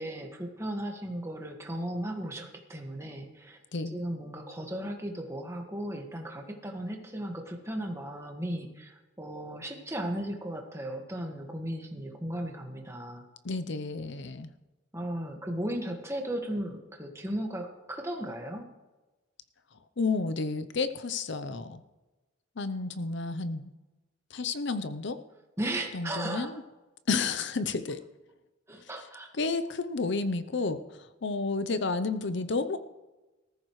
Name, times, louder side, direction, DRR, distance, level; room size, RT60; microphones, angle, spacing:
voice 1, 0.0-3.6 3.9-13.2 14.9-18.6 25.6-26.5 28.7-29.3, right 1 dB, 15° right, 3 dB, 1.7 m, -36 dB
voice 2, 13.4-14.5 20.0-21.8 22.6-23.7 24.3-25.2 25.9-26.6 27.1-28.0 29.3-32.8, left 3 dB, 60° left, 11 dB, 0.7 m, -31 dB
19.0 x 14.0 x 3.2 m, 1.1 s
head